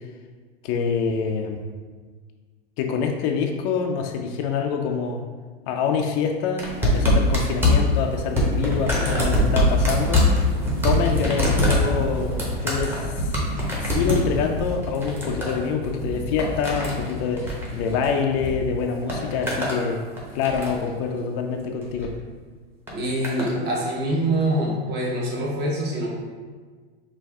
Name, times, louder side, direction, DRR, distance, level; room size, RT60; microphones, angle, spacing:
voice 1, 0.6-1.6 2.8-5.2 5.7-10.3 10.8-12.3 12.6-13.3 13.8-20.0 20.3-22.1, left 6 dB, 40° left, 3 dB, 0.5 m, -26 dB
sound 1, 6.6-18.5 18.8-19.8 20.2-20.9 21.8-22.1 22.9-23.5 24.4-24.5, left 1 dB, 5° right, 0.9 m, -23 dB
voice 2, 22.9-26.1, right 1 dB, 30° right, -3 dB, 1.2 m, -25 dB
5.5 x 2.6 x 3.5 m, 1.5 s
hypercardioid pair, 130°, 32 cm